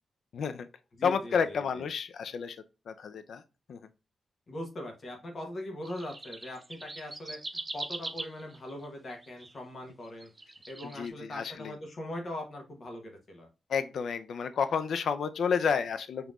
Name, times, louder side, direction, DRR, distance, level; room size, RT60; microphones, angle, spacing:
voice 1, 0.3-0.7 1.0-2.6 2.9-3.4 3.7-3.8 10.8-11.7 13.7-16.3, left 6 dB, 70° left, 11 dB, 0.4 m, -30 dB
voice 2, 1.0-1.8 4.5-7.4 7.7-10.3 10.7-13.5, left 1 dB, 45° left, 2 dB, 1.1 m, -41 dB
sound 1, 5.8-9.5 10.0-11.1, right 2 dB, 20° right, 0.4 m, -41 dB
5.3 x 3.0 x 2.4 m, 0.29 s
wide cardioid pair, 125°, 0 cm